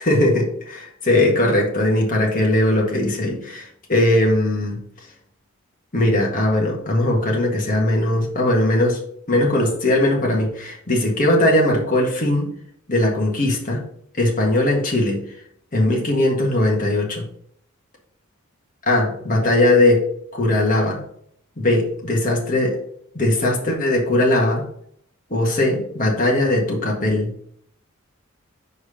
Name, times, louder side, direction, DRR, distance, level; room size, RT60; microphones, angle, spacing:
voice 1, 0.0-4.8 5.9-9.0 9.3-12.5 12.9-13.8 14.2-15.2 15.7-17.2 18.9-20.0 20.3-21.0 21.6-22.8 23.1-24.6 25.3-27.3, left 1 dB, 40° left, -1 dB, 1.7 m, -19 dB
5.1 x 4.6 x 5.7 m, 0.67 s
head